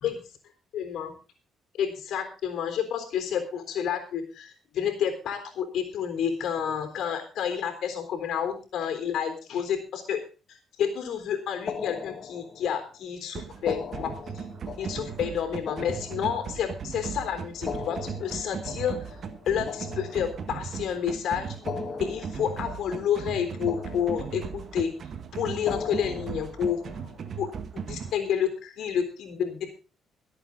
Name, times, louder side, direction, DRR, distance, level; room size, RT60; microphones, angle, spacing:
voice 1, 0.7-1.1 1.7-10.2 10.5-14.4 14.8-19.2 19.5-21.6 22.0-24.9 25.3-26.8 27.4-29.7, left 8 dB, 75° left, 7 dB, 3.7 m, -30 dB
sound 1, 11.7-12.9 13.5-16.9 17.5-20.8 21.5-23.4 23.7-24.7 25.5-27.4, left 6 dB, 50° left, 1.5 m, -39 dB
sound 2, 13.3-28.1, right 7 dB, 55° right, 1.6 m, -37 dB
23.5 x 8.3 x 3.9 m, 0.34 s
cardioid pair, 90°, 0 cm